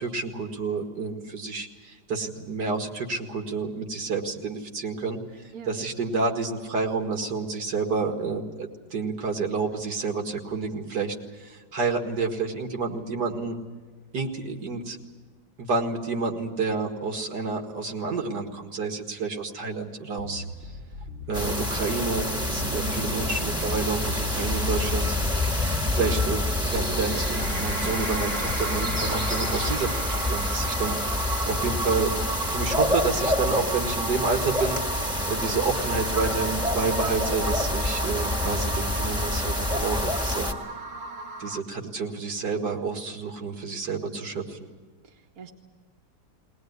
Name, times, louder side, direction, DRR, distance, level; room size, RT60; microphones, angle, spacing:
voice 1, 0.0-5.2 5.7-13.6 14.1-15.0 15.6-20.4 21.3-25.6 25.9-31.0 31.5-32.1 32.5-34.8 35.3-40.5 41.4-44.6, right 4 dB, 75° right, 4 dB, 2.5 m, -29 dB
Bass guitar, 20.2-29.8, left 1 dB, 40° right, 1.7 m, -39 dB
sound 1, 21.3-40.5, left 1 dB, ahead, 1.8 m, -27 dB
voice 2, 22.7-23.2 31.5-31.8 45.0-45.5, right 2 dB, 55° right, 1 dB, 1.9 m, -41 dB
sound 2, 27.1-41.6, right 4 dB, 90° right, 2.5 m, -35 dB
20.5 x 19.5 x 9.5 m, 1.4 s
omnidirectional pair, 1.8 m